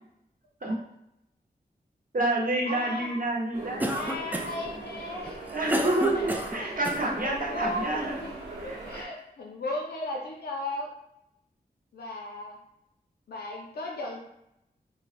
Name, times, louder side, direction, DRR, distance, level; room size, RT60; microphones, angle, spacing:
voice 1, 2.1-3.9 5.5-8.1 8.6-9.1, right 2 dB, 60° right, -2 dB, 0.9 m, -28 dB
voice 2, 2.7-3.1 4.0-5.6 6.2-6.8 7.2-8.3 8.6-10.9 11.9-12.6 13.3-14.3, left 2 dB, 80° left, -1 dB, 0.5 m, -36 dB
sound 1, 3.5-9.0, right 2 dB, 90° right, 0.9 m, -40 dB
Cough, 3.8-4.7 5.3-7.0, right 1 dB, 10° right, 0.3 m, -30 dB
4.3 x 2.0 x 2.5 m, 0.81 s
wide cardioid pair, 75°, 16 cm